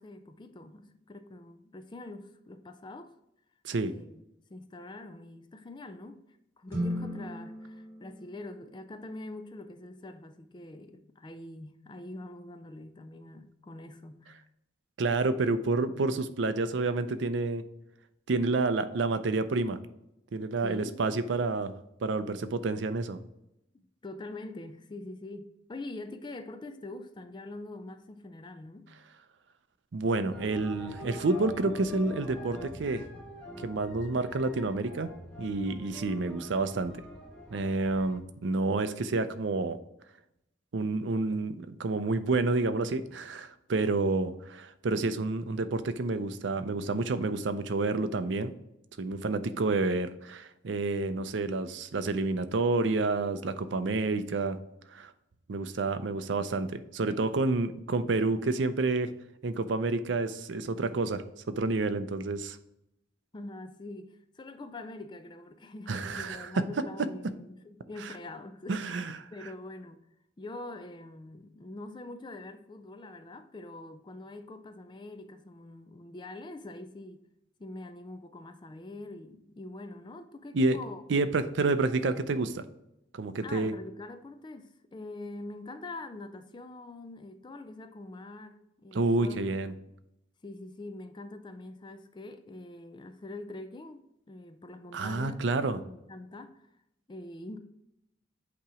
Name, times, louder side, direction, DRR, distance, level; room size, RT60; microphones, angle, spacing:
voice 1, 0.0-3.1 3.8-4.2 4.5-6.2 6.6-14.4 20.6-21.0 24.0-28.9 63.3-68.8 69.3-70.0 70.4-77.2 77.6-81.0 83.4-89.6 90.4-95.5 95.8-96.6 97.1-97.6, left 2 dB, 25° left, 0.4 m, -44 dB
sound 1, 6.7-9.1, equal, 15° right, 2.0 m, -37 dB
voice 2, 15.0-17.6 18.3-19.8 20.3-21.7 22.0-23.2 29.9-33.0 33.6-35.1 35.4-37.0 37.5-39.8 40.7-48.5 49.0-54.6 54.9-55.1 55.5-59.1 59.4-62.6 65.9-66.5 68.7-69.2 80.5-80.8 81.1-82.6 83.1-83.7 88.9-89.7 94.9-95.8, right 3 dB, 70° right, 0.5 m, -29 dB
sound 2, 30.3-38.2, left 1 dB, 5° left, 0.9 m, -44 dB
8.4 x 2.9 x 4.8 m
head